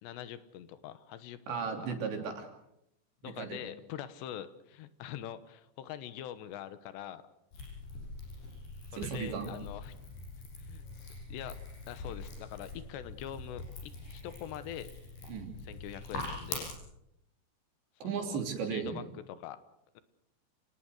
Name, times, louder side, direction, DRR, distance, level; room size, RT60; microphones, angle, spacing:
voice 1, 0.0-1.6 1.9-2.0 3.2-7.3 8.9-9.9 10.6-10.9 11.3-14.9 15.6-16.7 18.0-18.4 18.7-19.6 19.9-20.0, left 11 dB, 80° left, 13 dB, 3.3 m, -44 dB
voice 2, 1.5-2.5 3.2-3.6 8.9-9.5 15.3-15.6 18.0-19.0, right 6 dB, 80° right, 4 dB, 5.4 m, -36 dB
sound 1, 7.5-16.7, left 3 dB, 60° left, 8.7 m, -43 dB
29.0 x 18.5 x 6.5 m, 0.82 s
omnidirectional pair, 5.0 m